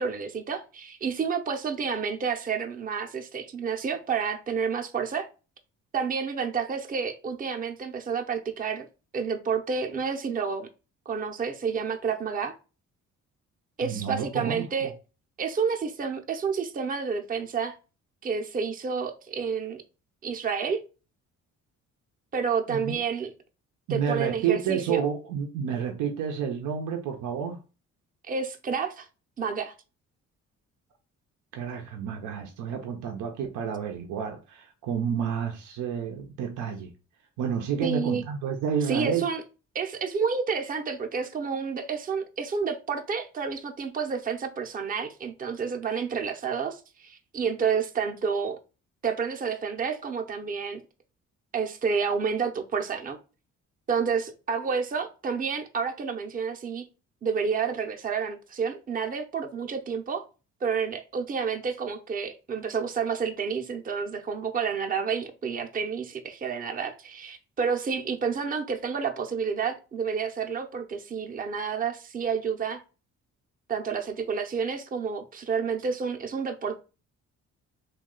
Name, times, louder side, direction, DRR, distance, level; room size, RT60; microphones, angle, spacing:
voice 1, 0.0-5.3 5.9-8.9 9.1-10.7 11.1-12.6 13.8-14.9 15.4-17.8 18.2-19.8 20.2-20.8 22.3-23.3 23.9-25.0 28.3-29.1 29.4-29.7 37.8-38.2 38.9-39.4 39.7-48.6 49.0-50.8 51.5-53.2 53.9-56.8 57.2-60.2 60.6-72.8 73.7-76.8, right 6 dB, 30° right, 0.6 m, -29 dB
voice 2, 13.8-14.9 22.7-22.9 23.9-27.6 31.5-36.9 37.4-39.3, right 7 dB, 85° right, 0.7 m, -30 dB
3.2 x 2.3 x 3.6 m
cardioid pair, 90°, 30 cm